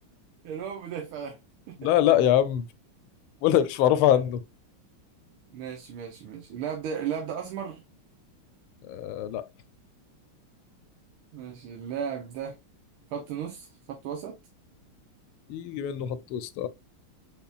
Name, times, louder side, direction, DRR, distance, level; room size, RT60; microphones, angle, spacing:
voice 1, 0.4-1.4 1.7-1.9 4.1-4.2 5.5-7.8 11.3-12.6 13.1-14.4, right 8 dB, 85° right, 1.7 m, -35 dB
voice 2, 1.8-2.7 3.4-4.4 8.9-9.5 15.5-16.7, left 11 dB, 80° left, 1.5 m, -23 dB
5.5 x 4.1 x 2.3 m
omnidirectional pair, 2.3 m